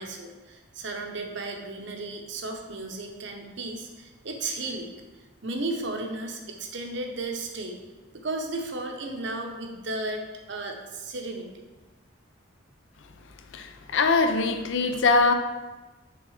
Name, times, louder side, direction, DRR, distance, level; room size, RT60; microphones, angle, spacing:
voice 1, 0.0-4.9 5.4-7.8 8.1-11.5, right 2 dB, 65° right, 3 dB, 0.8 m, -34 dB
voice 2, 13.5-15.3, left 3 dB, 75° left, 7 dB, 0.5 m, -22 dB
6.0 x 3.6 x 4.8 m, 1.2 s
head